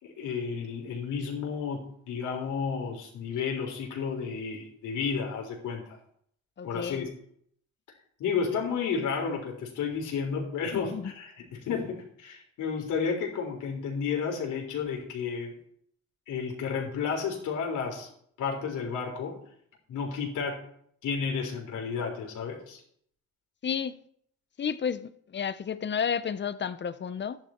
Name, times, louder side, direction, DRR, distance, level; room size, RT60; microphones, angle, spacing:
voice 1, 0.0-5.8 6.6-7.1 8.2-15.5 16.3-18.1 18.4-19.4 19.9-20.6 21.0-22.8, left 6 dB, 80° left, 3.8 m, -32 dB
voice 2, 6.6-7.1 10.7-11.1 23.6-24.0 24.6-27.4, left 7 dB, 35° left, 0.7 m, -32 dB
12.5 x 10.5 x 4.4 m
cardioid pair, 90°, 30 cm